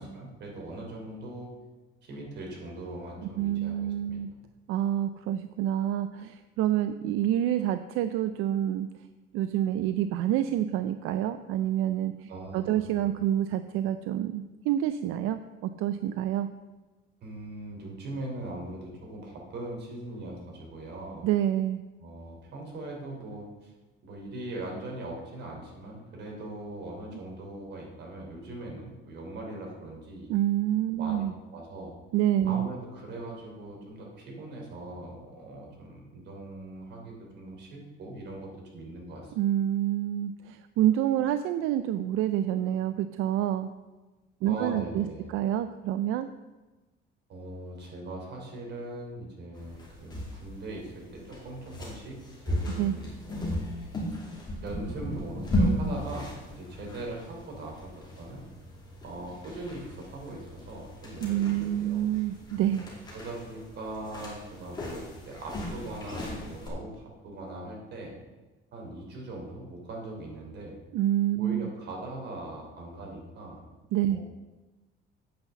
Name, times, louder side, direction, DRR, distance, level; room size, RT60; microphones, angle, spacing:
voice 1, 0.0-1.5 2.0-4.2 12.3-12.8 17.2-21.3 22.0-23.7 24.0-30.3 31.0-31.2 31.5-31.9 32.4-39.3 44.4-45.3 47.3-52.2 52.4-53.5 54.6-58.4 59.0-62.1 63.1-68.2 68.7-70.8 71.4-73.6 74.1-74.2, right 2 dB, 55° right, -1 dB, 3.1 m, -40 dB
voice 2, 3.4-4.3 4.7-8.9 9.3-16.5 21.2-21.8 30.3-31.3 32.1-32.7 39.4-43.7 44.4-46.3 52.8-52.9 61.2-62.8 70.9-71.7 73.9-74.2, right 12 dB, 80° right, 11 dB, 0.5 m, -27 dB
sound 1, 49.5-66.7, equal, 20° left, 2.6 m, -36 dB
8.6 x 5.8 x 6.8 m, 1.2 s
cardioid pair, 155°, 21 cm